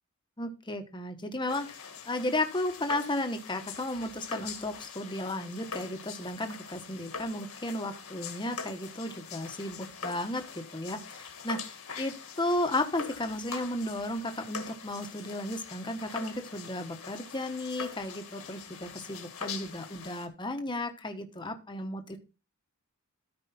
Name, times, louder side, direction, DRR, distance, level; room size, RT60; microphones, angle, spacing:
voice 1, 0.4-22.2, left 1 dB, 20° left, 6 dB, 1.2 m, -34 dB
sound 1, 1.5-20.3, left 5 dB, 80° left, 1.9 m, -43 dB
13.5 x 4.8 x 4.2 m, 0.32 s
head